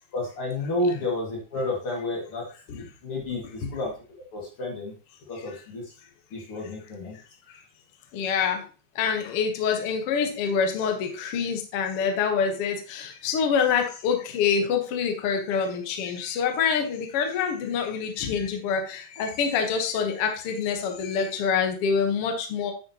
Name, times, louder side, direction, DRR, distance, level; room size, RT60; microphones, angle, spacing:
voice 1, 0.1-2.4 2.7-3.9 4.3-4.9 5.3-5.9 6.3-7.2, left 2 dB, 45° left, -2 dB, 2.6 m, -30 dB
voice 2, 8.1-8.6 9.0-22.7, left 6 dB, 60° left, 4 dB, 1.6 m, -26 dB
9.4 x 6.5 x 2.9 m, 0.36 s
omnidirectional pair, 4.0 m